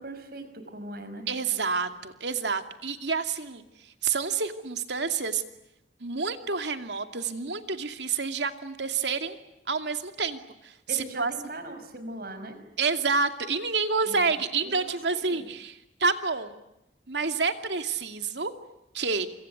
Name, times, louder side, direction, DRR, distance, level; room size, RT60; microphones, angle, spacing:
voice 1, 0.0-1.3 10.9-12.6 14.1-14.3 14.6-15.5, right 1 dB, 60° right, 9 dB, 5.5 m, -40 dB
voice 2, 1.3-5.4 6.0-9.4 9.7-11.3 12.8-15.7 16.0-16.6 17.1-18.5 18.9-19.3, right 4 dB, 85° right, 7 dB, 2.5 m, -28 dB
27.5 x 25.0 x 8.0 m, 0.88 s
head